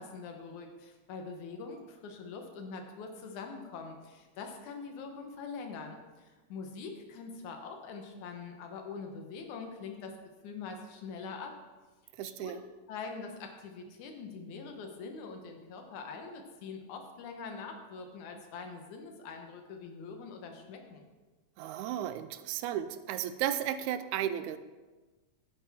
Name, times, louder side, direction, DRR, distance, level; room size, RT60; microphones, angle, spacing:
voice 1, 0.0-10.2 10.4-11.5 12.2-12.6 12.9-21.1, left 4 dB, 85° left, 4 dB, 2.5 m, -43 dB
voice 2, 12.2-12.6 21.6-24.6, right 11 dB, 85° right, 12 dB, 2.0 m, -34 dB
11.0 x 9.6 x 3.6 m, 1.3 s
omnidirectional pair, 3.3 m